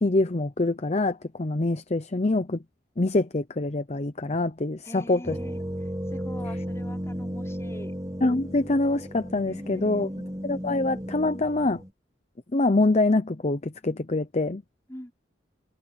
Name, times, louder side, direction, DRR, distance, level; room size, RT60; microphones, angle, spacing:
voice 1, 0.0-2.6 3.0-5.4 8.2-10.1 10.4-11.8 12.5-14.6, left 2 dB, 35° left, 0.7 m, -25 dB
voice 2, 4.8-5.6 6.1-7.9 9.5-10.1 14.9-15.1, left 1 dB, 15° left, 5.4 m, -43 dB
sound 1, 5.3-11.9, equal, 20° right, 1.8 m, -34 dB
head